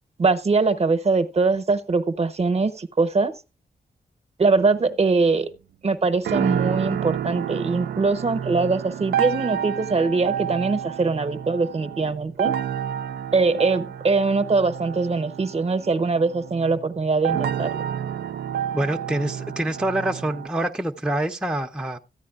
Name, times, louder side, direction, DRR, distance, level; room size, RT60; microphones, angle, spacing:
voice 1, 0.2-3.3 4.4-5.5 5.8-12.5 13.3-17.8, right 4 dB, 40° right, 0.8 m, -22 dB
sound 1, 6.2-20.5, right 9 dB, 80° right, 0.4 m, -30 dB
voice 2, 18.7-22.0, right 1 dB, 5° right, 0.5 m, -26 dB
14.0 x 9.4 x 2.4 m
wide cardioid pair, 100°, 16 cm